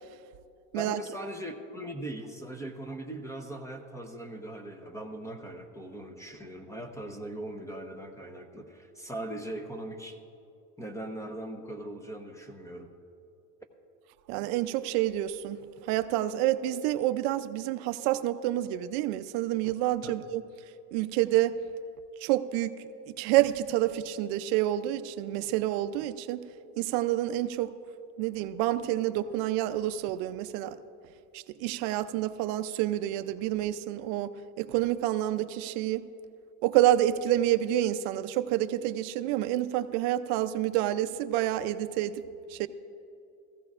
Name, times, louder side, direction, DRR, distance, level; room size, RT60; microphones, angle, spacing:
voice 1, 0.7-10.2 10.8-12.9 20.0-20.1, right 1 dB, 5° left, 0.8 m, -40 dB
voice 2, 14.3-20.4 20.9-21.6 22.2-26.5 26.8-27.8 28.2-30.7 31.3-36.0 36.6-42.2 42.5-42.7, right 13 dB, 75° right, 0.6 m, -28 dB
16.5 x 15.0 x 2.4 m
cardioid pair, 125°, 44 cm